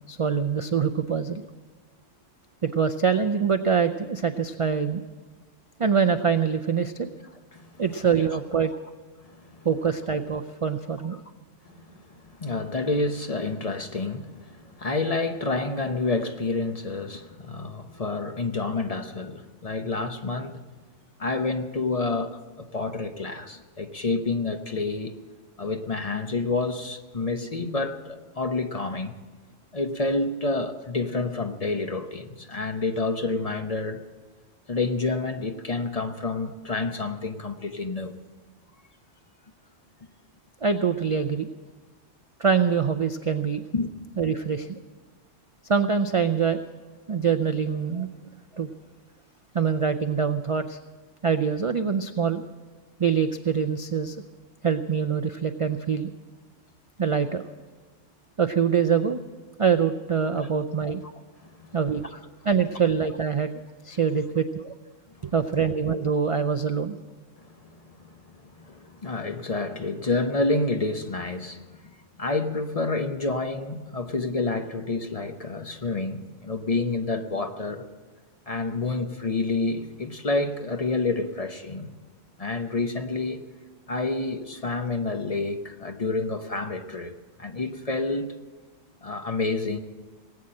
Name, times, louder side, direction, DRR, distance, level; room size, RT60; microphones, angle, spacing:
voice 1, 0.1-1.4 2.6-5.0 5.8-7.1 7.8-8.7 9.6-11.2 40.6-41.5 42.4-43.6 44.2-44.8 45.7-46.6 47.1-48.1 48.5-48.7 49.5-50.8 51.2-52.4 53.0-54.2 54.6-56.1 57.0-57.4 58.4-59.2 59.6-61.0 61.7-62.0 62.4-63.5 63.8-64.7 65.2-67.0, right 6 dB, 50° right, 0.3 m, -24 dB
voice 2, 9.2-9.7 11.8-20.6 21.2-25.1 25.6-29.1 29.7-34.0 34.7-38.1 43.7-43.9 60.4-60.5 61.4-61.8 62.1-62.2 65.2-65.3 67.4-77.9 78.5-81.9 82.4-83.4 83.9-88.3 89.0-89.8, left 3 dB, 35° left, 0.8 m, -29 dB
19.0 x 8.8 x 7.6 m
omnidirectional pair, 1.3 m